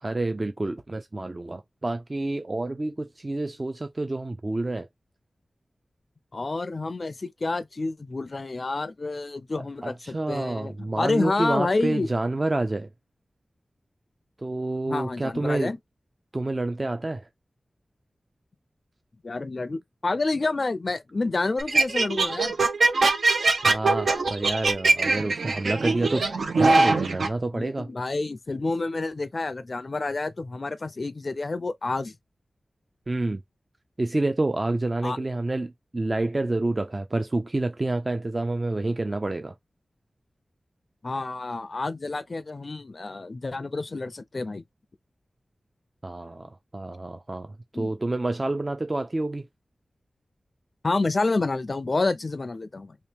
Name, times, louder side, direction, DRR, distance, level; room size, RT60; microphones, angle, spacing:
voice 1, 0.0-4.9 9.8-12.9 14.4-15.7 16.3-17.3 23.6-26.3 26.6-27.9 33.1-33.4 34.0-39.5 46.0-49.5, right 2 dB, 30° right, 0.4 m, -28 dB
voice 2, 6.3-12.1 14.9-15.8 19.2-22.6 27.5-32.1 35.0-35.2 41.0-44.6 47.7-47.9 50.8-53.0, left 3 dB, 50° left, 0.4 m, -29 dB
sound 1, 21.6-27.3, right 3 dB, 85° right, 0.6 m, -22 dB
2.9 x 2.8 x 3.3 m
wide cardioid pair, 90°, 0 cm